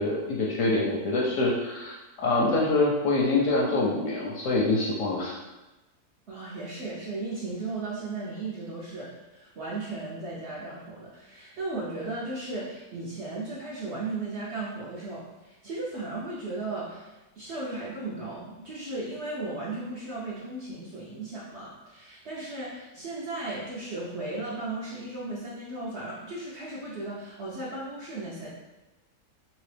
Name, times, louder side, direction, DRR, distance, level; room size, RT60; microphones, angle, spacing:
voice 1, 0.0-5.4, left 2 dB, 70° left, -3 dB, 0.8 m, -25 dB
voice 2, 6.3-28.5, right 2 dB, 65° right, -6 dB, 0.7 m, -36 dB
2.9 x 2.9 x 3.2 m, 1.1 s
omnidirectional pair, 1.7 m